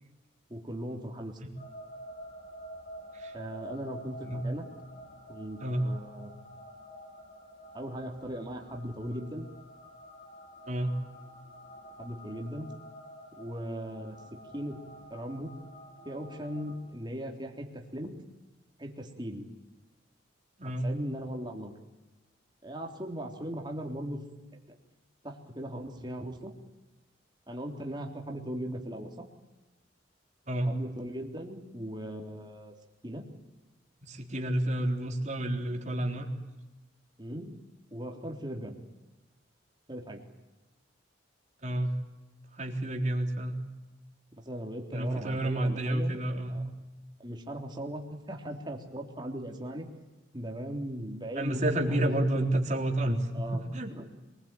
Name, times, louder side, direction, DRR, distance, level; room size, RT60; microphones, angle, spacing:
voice 1, 0.5-1.3 3.3-4.7 5.3-6.3 7.7-9.5 12.0-12.7 13.4-14.2 14.5-14.7 15.1-15.5 16.0-18.1 18.8-19.5 20.6-21.7 22.6-24.2 25.2-26.5 27.5-29.3 30.6-32.7 33.0-33.2 37.2-37.5 37.9-38.8 39.9-40.2 44.4-46.2 46.5-46.7 47.2-49.9 50.3-52.1 52.4-52.6 53.3-54.1, equal, 25° right, 2 dB, 3.5 m, -38 dB
sound 1, 1.6-16.8, equal, 50° left, 6.1 m, -49 dB
voice 2, 5.6-5.9 10.7-11.0 20.6-20.9 30.5-30.8 34.0-36.3 41.6-42.0 42.5-43.6 44.9-46.6 51.4-53.9, right 1 dB, 40° right, 2 dB, 3.8 m, -30 dB
27.0 x 21.0 x 9.2 m, 1.1 s
head